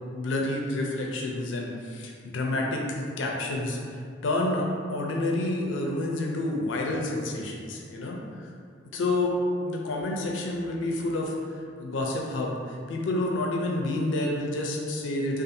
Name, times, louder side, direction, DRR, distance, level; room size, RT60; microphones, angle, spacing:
voice 1, 0.1-8.2 8.9-9.3 9.6-11.3 11.8-15.4, left 2 dB, 75° left, -1 dB, 0.4 m, -29 dB
2.5 x 2.4 x 2.6 m, 2.2 s
head